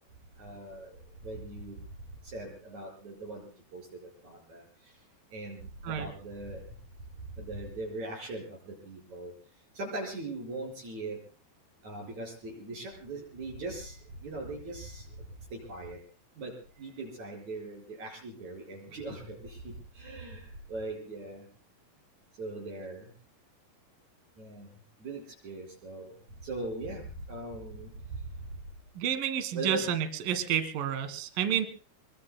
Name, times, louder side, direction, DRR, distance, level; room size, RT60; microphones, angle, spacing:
voice 1, 0.4-0.9 1.2-1.8 2.2-3.8 4.2-4.6 5.3-6.6 7.4-9.3 9.8-11.2 11.8-14.0 14.2-15.0 15.5-16.0 16.4-16.5 16.8-19.6 20.0-21.4 22.4-23.0 24.4-24.7 25.0-26.1 26.4-27.0 27.3-27.9 29.5-29.8, right 2 dB, 45° right, -1 dB, 6.4 m, -40 dB
voice 2, 28.9-31.7, right 9 dB, 65° right, 10 dB, 3.3 m, -30 dB
26.5 x 24.0 x 2.2 m, 0.39 s
omnidirectional pair, 4.8 m